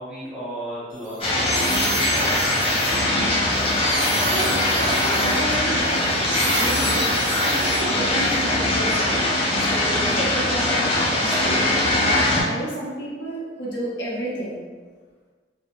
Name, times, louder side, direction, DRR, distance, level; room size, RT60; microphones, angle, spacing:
voice 1, 0.0-2.3, equal, 5° right, -9 dB, 0.7 m, -34 dB
sound 1, 1.0-8.3, right 3 dB, 70° right, 0.4 m, -32 dB
sound 2, 1.2-12.4, left 1 dB, 30° left, 0.4 m, -21 dB
voice 2, 4.3-6.2 6.5-7.1 7.4-9.1 9.5-11.6 11.9-14.6, right 1 dB, 80° left, -6 dB, 0.8 m, -31 dB
2.3 x 2.1 x 2.9 m, 1.4 s
head